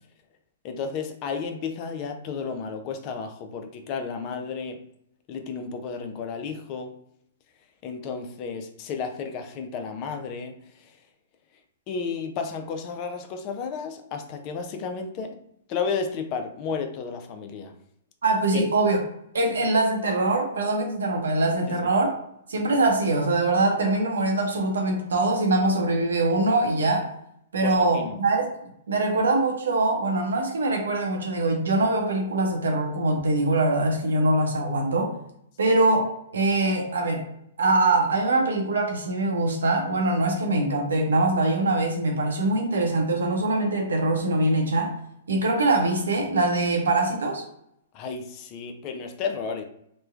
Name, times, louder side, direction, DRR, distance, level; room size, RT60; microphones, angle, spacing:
voice 1, 0.6-4.8 5.3-7.0 7.8-11.0 11.9-15.4 15.7-17.7 18.5-18.6 21.7-21.8 27.6-28.2 35.6-35.8 47.9-49.6, left 5 dB, 40° left, 6 dB, 0.4 m, -32 dB
voice 2, 18.2-19.0 19.3-22.1 22.5-27.1 27.5-28.5 28.9-35.1 35.6-36.0 36.3-37.3 37.6-44.9 45.3-47.4, right 2 dB, 80° right, 2 dB, 0.7 m, -23 dB
3.0 x 2.1 x 2.4 m, 0.76 s
hypercardioid pair, 125°, 0 cm